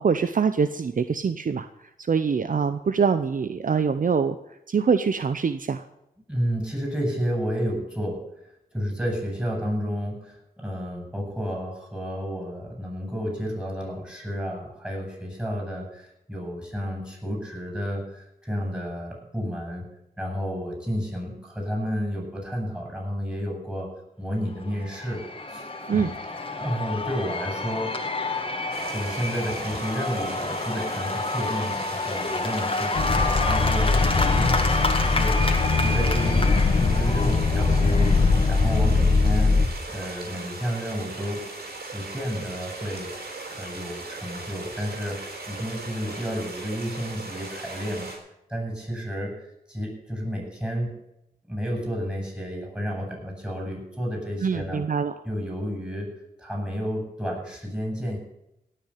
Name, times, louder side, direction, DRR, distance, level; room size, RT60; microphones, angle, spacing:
voice 1, 0.0-1.7 2.1-4.4 4.7-5.8 25.9-26.1 54.4-55.1, right 6 dB, 55° right, 11 dB, 0.7 m, -24 dB
voice 2, 6.3-8.2 8.7-19.9 20.2-23.9 24.2-25.2 25.5-26.1 26.6-27.9 28.9-36.5 36.7-41.4 41.9-48.1 48.5-49.3 49.7-50.9 51.5-54.8 55.2-56.1 56.4-58.2, equal, 10° right, 0 dB, 7.4 m, -31 dB
Cheering / Applause / Crowd, 24.6-39.3, left 2 dB, 35° left, 1.9 m, -29 dB
sound 1, 28.7-48.2, right 3 dB, 80° right, 4.4 m, -38 dB
sound 2, 32.9-39.7, left 3 dB, 65° left, 1.8 m, -21 dB
17.5 x 6.8 x 8.4 m, 0.84 s
wide cardioid pair, 75°, 16 cm